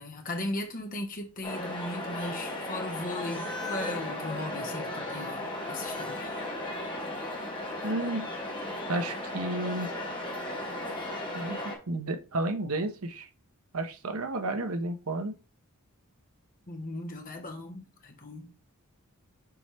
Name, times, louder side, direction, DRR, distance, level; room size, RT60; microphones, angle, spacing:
voice 1, 0.0-5.4 5.7-6.3 16.7-18.5, left 2 dB, 40° left, 1.3 m, -37 dB
sound 1, 1.4-11.8, left 1 dB, 20° left, 1.6 m, -36 dB
voice 2, 7.8-8.3 8.9-9.9 11.3-11.6 11.9-13.3 13.7-15.4, right 2 dB, 75° right, 0.9 m, -31 dB
6.9 x 4.2 x 3.4 m
head